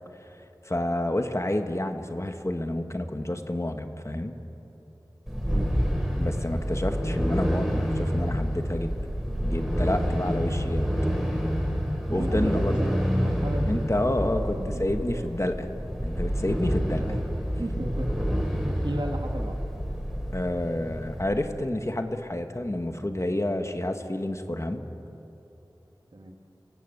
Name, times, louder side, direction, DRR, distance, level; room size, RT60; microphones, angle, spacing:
voice 1, 0.6-4.3 6.2-8.9 9.4-10.9 12.1-12.9 13.6-15.7 16.0-17.0 20.3-24.8, left 1 dB, 35° left, 6 dB, 1.6 m, -29 dB
sound 1, 5.3-21.2, equal, 5° right, 4.2 m, -28 dB
voice 2, 12.1-12.5 12.8-15.3 17.0-18.1 18.7-19.6 26.1-26.4, right 1 dB, 65° right, 3 dB, 2.3 m, -36 dB
28.5 x 18.0 x 8.1 m, 3.0 s
wide cardioid pair, 50°, 8 cm